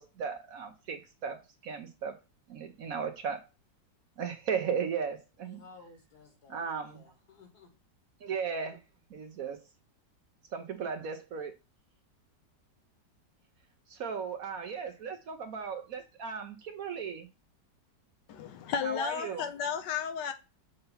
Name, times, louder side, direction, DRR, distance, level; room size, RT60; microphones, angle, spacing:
voice 1, 0.0-2.2 2.5-3.4 4.2-5.6 6.5-7.0 8.2-8.8 9.1-9.6 10.5-11.5 13.9-17.3 18.8-19.4, right 6 dB, 60° right, 1.0 m, -36 dB
voice 2, 5.4-7.7, left 4 dB, 65° left, 2.1 m, -56 dB
voice 3, 18.3-20.3, left 7 dB, 80° left, 1.2 m, -33 dB
6.7 x 2.9 x 5.4 m
omnidirectional pair, 1.9 m